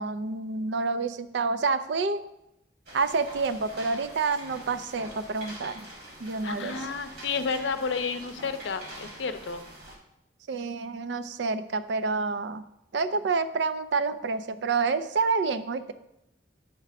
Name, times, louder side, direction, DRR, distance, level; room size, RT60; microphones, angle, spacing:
voice 1, 0.0-2.2 2.9-5.8 6.2-6.8 10.5-12.6 12.9-15.9, right 4 dB, 75° right, 12 dB, 0.4 m, -28 dB
sound 1, 2.9-10.0, right 1 dB, 55° right, 1.6 m, -45 dB
voice 2, 6.4-9.6, left 5 dB, 85° left, 9 dB, 0.6 m, -31 dB
9.7 x 3.3 x 4.7 m, 0.85 s
head